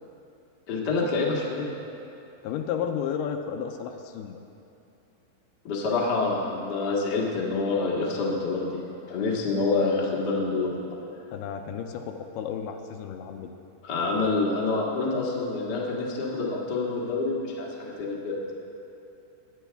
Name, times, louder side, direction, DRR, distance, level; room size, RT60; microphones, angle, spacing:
voice 1, 0.7-1.7 5.6-8.8 9.1-10.9 13.8-18.5, left 3 dB, 65° left, -4 dB, 1.0 m, -27 dB
voice 2, 2.4-4.4 11.3-13.5, left 8 dB, 85° left, 5 dB, 2.5 m, -32 dB
18.5 x 9.2 x 3.4 m, 2.8 s
omnidirectional pair, 4.7 m